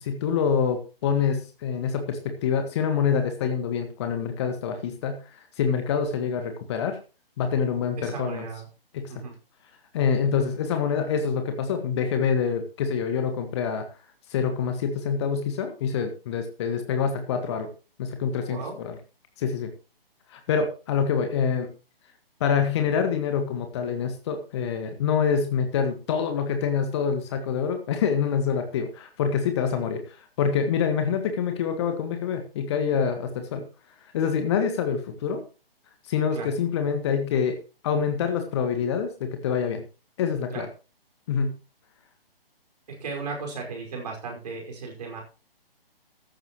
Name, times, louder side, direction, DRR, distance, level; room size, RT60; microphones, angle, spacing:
voice 1, 0.0-5.2 5.6-7.0 7.4-8.5 8.9-9.1 9.9-13.8 14.3-17.7 18.0-19.0 19.4-19.7 20.3-21.7 22.4-33.6 34.1-35.4 36.0-37.6 37.8-39.8 40.2-40.7 41.3-41.5, left 6 dB, 30° left, 6 dB, 1.7 m, -26 dB
voice 2, 8.0-8.7 9.1-9.3 10.3-10.5 18.5-18.8 29.7-29.8 36.3-36.5 40.5-40.6 42.9-45.2, right 4 dB, 40° right, 0 dB, 5.4 m, -36 dB
14.5 x 12.0 x 3.1 m, 0.34 s
figure-of-eight pair, 135°, 30 cm